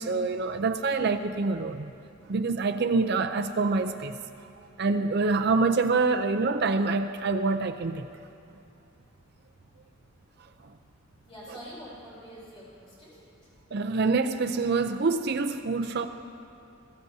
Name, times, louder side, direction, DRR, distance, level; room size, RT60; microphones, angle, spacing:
voice 1, 0.0-1.9 2.3-4.2 4.8-8.1 13.7-16.1, right 3 dB, 50° right, 7 dB, 0.5 m, -26 dB
voice 2, 11.3-13.2 15.8-15.9, equal, 25° left, -7 dB, 3.9 m, -45 dB
20.5 x 15.5 x 2.8 m, 2.5 s
head